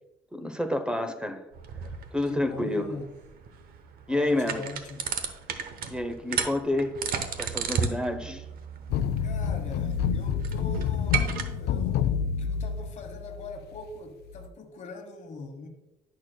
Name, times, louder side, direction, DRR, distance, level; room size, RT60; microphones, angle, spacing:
voice 1, 0.3-1.4 2.1-2.9 4.1-4.6 5.9-7.0 7.4-8.5, left 1 dB, 5° right, 8 dB, 0.7 m, -28 dB
sound 1, 1.5-11.4, right 7 dB, 60° right, 0.9 m, -34 dB
voice 2, 2.3-3.1 4.1-5.1 9.2-15.7, left 3 dB, 45° left, 6 dB, 1.2 m, -42 dB
sound 2, 8.9-13.8 14.3-14.5, left 7 dB, 75° left, 0.4 m, -28 dB
10.5 x 6.3 x 2.2 m, 0.98 s
cardioid pair, 110°, 17 cm